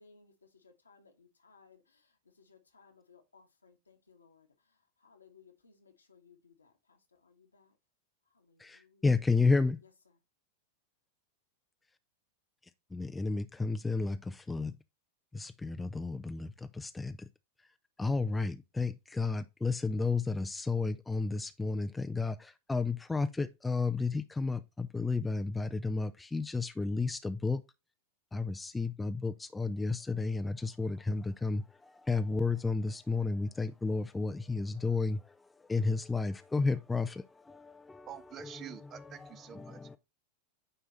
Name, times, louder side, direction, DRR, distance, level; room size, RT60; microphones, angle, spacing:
voice 1, 0.0-4.5 5.0-7.7 8.3-9.1 9.8-10.2, left 5 dB, 75° left, 1.4 m, -62 dB
voice 2, 9.0-9.7 13.2-14.1 14.5-14.7 15.8-16.1 18.0-18.5 18.8-18.9 19.2-21.3 21.6-21.9 22.2-22.3 22.7-23.3 23.6-24.1 24.4-24.6 24.9-27.6 28.3-28.4 28.8-29.3 29.6-30.5 30.8-31.6 32.1-35.1 35.7-37.1, left 3 dB, 10° left, 0.4 m, -30 dB
voice 3, 38.1-40.0, right 9 dB, 30° right, 0.6 m, -47 dB
9.3 x 3.4 x 4.1 m
figure-of-eight pair, 90°, 0 cm